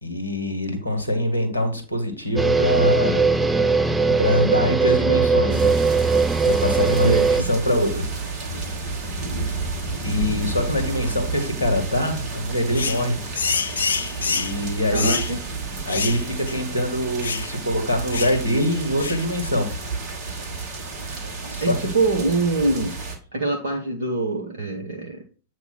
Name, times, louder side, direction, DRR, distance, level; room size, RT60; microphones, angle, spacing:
voice 1, 0.0-3.2 3.5-3.8 4.2-5.7 6.4-8.0 9.5-9.7 10.0-13.2 14.2-15.2 15.8-19.7 21.5-21.9, left 1 dB, 90° right, 4 dB, 1.6 m, -24 dB
sound 1, 2.4-7.4, right 4 dB, 10° right, 0.4 m, -20 dB
sound 2, 5.5-23.2, right 3 dB, 40° right, 1.8 m, -31 dB
voice 2, 7.0-7.6 14.9-15.4 21.6-23.0 23.3-25.2, right 3 dB, 75° right, 1 dB, 0.8 m, -24 dB
sound 3, 12.7-13.0 13.3-14.6 14.9-15.3 15.9-16.2 16.5-16.6 17.2-17.5 18.1-18.4 19.0-19.2, left 5 dB, 70° left, 0.4 m, -26 dB
8.0 x 3.0 x 5.9 m, 0.39 s
figure-of-eight pair, 90°, 0 cm